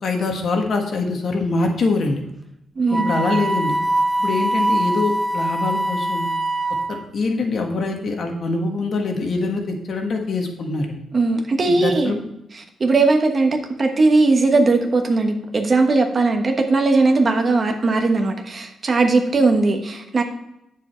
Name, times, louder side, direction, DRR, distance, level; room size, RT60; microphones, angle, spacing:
voice 1, 0.0-2.2 2.9-3.8 4.2-6.3 6.9-11.0 11.6-12.2, left 3 dB, 50° left, 3 dB, 1.5 m, -24 dB
voice 2, 2.8-3.1 11.1-12.2 12.8-20.2, right 3 dB, 30° right, 4 dB, 1.3 m, -18 dB
Wind instrument woodwind instrument, 2.9-7.1, right 1 dB, 10° right, 0.8 m, -22 dB
9.7 x 7.4 x 4.5 m, 0.84 s
wide cardioid pair, 160°, 0 cm